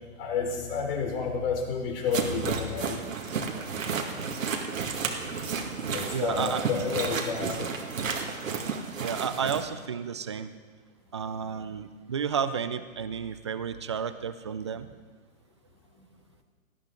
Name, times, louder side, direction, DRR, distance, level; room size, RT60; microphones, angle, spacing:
voice 1, 0.2-3.0 5.9-7.8 15.9-16.1, left 5 dB, 45° left, 2 dB, 3.4 m, -30 dB
sound 1, 2.1-9.6, right 5 dB, 70° right, 2.1 m, -32 dB
voice 2, 6.1-6.6 9.0-10.5 11.1-14.9, right 7 dB, 25° right, 11 dB, 0.3 m, -32 dB
17.5 x 13.5 x 3.8 m, 1.4 s
hypercardioid pair, 135°, 41 cm